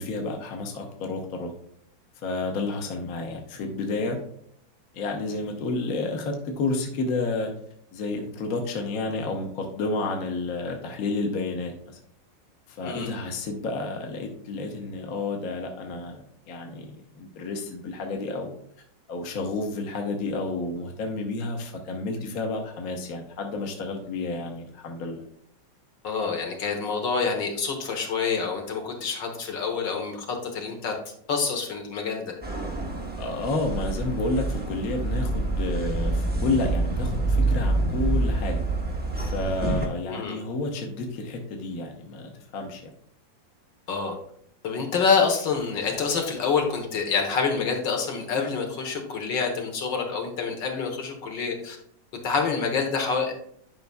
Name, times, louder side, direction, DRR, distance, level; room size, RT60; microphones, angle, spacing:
voice 1, 0.0-1.5 2.2-4.2 4.9-7.5 7.9-12.0 12.7-16.2 16.4-18.5 19.1-25.2 33.2-38.6 39.2-42.9, left 3 dB, 55° left, 2 dB, 1.3 m, -30 dB
voice 2, 26.0-30.9 31.3-32.3 40.0-40.4 43.9-44.2 44.6-51.8 52.2-53.3, left 5 dB, 75° left, 2 dB, 1.8 m, -27 dB
sound 1, 32.4-39.9, right 2 dB, 15° right, 0.3 m, -27 dB
10.5 x 5.2 x 2.3 m, 0.67 s
omnidirectional pair, 2.1 m